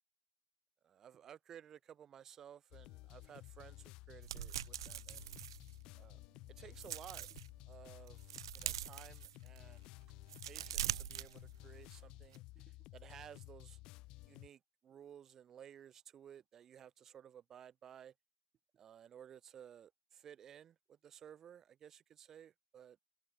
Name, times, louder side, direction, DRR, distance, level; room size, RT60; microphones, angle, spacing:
voice 1, 0.8-5.3 6.0-6.2 6.5-7.3 7.7-9.9 10.4-13.8 14.2-18.1 18.7-23.0, right 9 dB, 10° right, 4.9 m, -56 dB
sound 1, 2.7-14.5, left 20 dB, 20° left, 2.1 m, -54 dB
sound 2, 4.2-6.2 6.6-7.5 7.9-9.7 10.1-11.9 12.2-12.4, right 11 dB, 45° right, 0.5 m, -43 dB
hypercardioid pair, 180°, 3 cm